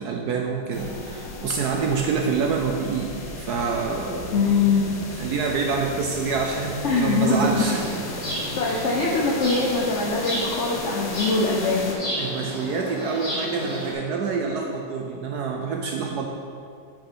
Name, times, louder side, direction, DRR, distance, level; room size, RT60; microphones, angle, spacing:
voice 1, 0.0-4.4 5.1-8.1 12.2-16.3, right 5 dB, 70° right, 1 dB, 1.0 m, -27 dB
sound 1, 0.7-11.9, left 2 dB, 55° left, 1.3 m, -35 dB
voice 2, 4.3-5.0 6.8-7.8 8.6-11.9, left 3 dB, 85° left, -3 dB, 0.6 m, -22 dB
sound 2, 7.7-13.9, equal, 30° left, 2.1 m, -32 dB
7.3 x 5.5 x 4.6 m, 2.4 s
omnidirectional pair, 2.1 m